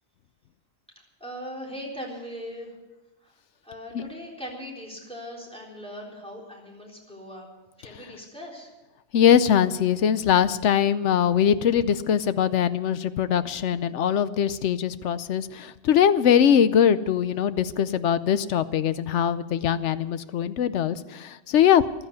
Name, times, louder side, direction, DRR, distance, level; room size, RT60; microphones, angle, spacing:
voice 1, 1.2-2.7 3.2-3.3 3.6-7.5 7.8-8.7, equal, 5° left, -3 dB, 3.8 m, -39 dB
voice 2, 9.1-21.8, left 9 dB, 85° left, 14 dB, 1.0 m, -22 dB
15.0 x 12.5 x 6.8 m, 1.0 s
omnidirectional pair, 1.2 m